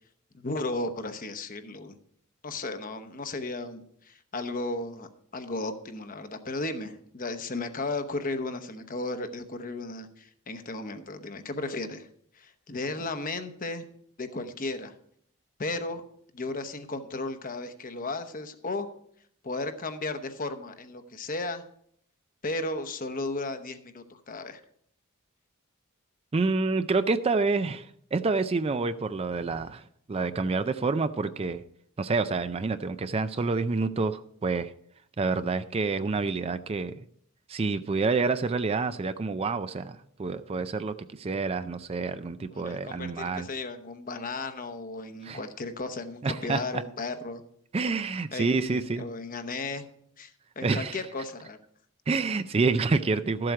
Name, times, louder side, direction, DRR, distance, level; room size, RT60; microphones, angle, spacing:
voice 1, 0.4-2.0 2.4-12.1 12.3-13.8 14.2-14.9 15.6-16.0 16.3-18.9 19.4-21.6 22.4-24.6 42.5-47.4 48.3-49.8 50.2-51.6, left 2 dB, 40° left, 9 dB, 0.9 m, -35 dB
voice 2, 26.3-31.6 32.0-34.7 35.2-37.1 37.5-43.5 45.2-45.4 46.2-46.8 47.7-49.1 50.6-51.0 52.1-53.5, right 4 dB, 25° right, 11 dB, 0.4 m, -28 dB
13.0 x 7.7 x 4.7 m, 0.67 s
head